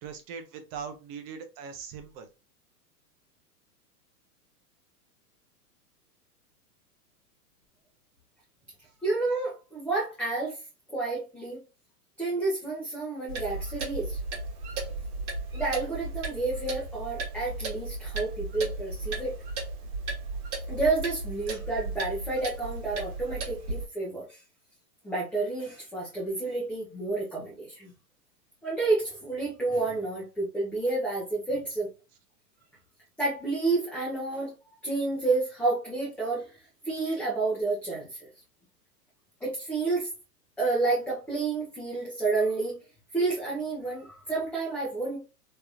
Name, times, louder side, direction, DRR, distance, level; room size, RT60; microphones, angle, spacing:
voice 1, 0.0-2.3, right 6 dB, 35° right, 0.7 m, -40 dB
voice 2, 9.0-10.6 10.9-11.6 12.2-14.2 15.5-19.3 20.7-24.4 25.0-27.9 28.6-31.9 33.2-34.5 34.8-36.6 36.8-38.3 39.4-40.1 40.6-42.7 43.1-45.2, right 3 dB, 5° left, 0.8 m, -30 dB
Clock, 13.3-23.9, right 3 dB, 65° right, 1.6 m, -35 dB
3.3 x 2.9 x 2.4 m
hypercardioid pair, 125°, 47 cm